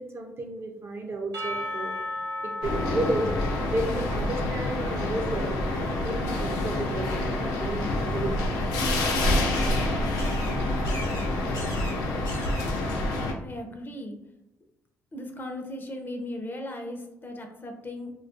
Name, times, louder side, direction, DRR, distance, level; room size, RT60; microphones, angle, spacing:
voice 1, 0.0-2.0 2.4-3.3 3.7-8.5, right 2 dB, 40° right, 3 dB, 0.5 m, -32 dB
Percussion / Church bell, 1.3-5.0, left 1 dB, 80° right, 0.8 m, -35 dB
sound 1, 2.6-13.3, left 1 dB, 90° left, 0.4 m, -27 dB
sound 2, 6.8-13.0, left 1 dB, 75° left, 0.8 m, -42 dB
voice 2, 13.4-14.2 15.1-18.1, left 1 dB, 35° left, 3 dB, 0.5 m, -37 dB
2.3 x 2.2 x 2.5 m, 0.85 s
supercardioid pair, 65°, 6 cm